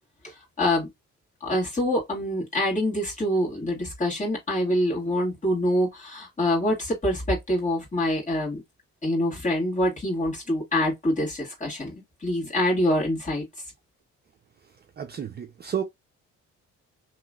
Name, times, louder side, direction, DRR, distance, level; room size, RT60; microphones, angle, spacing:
voice 1, 0.2-0.9 1.4-8.6 9.0-12.0 12.2-13.4, left 1 dB, 25° left, 2.0 m, -25 dB
voice 2, 15.0-15.8, right 9 dB, 35° right, 0.5 m, -31 dB
3.0 x 2.9 x 2.3 m
cardioid pair, 90°, 30 cm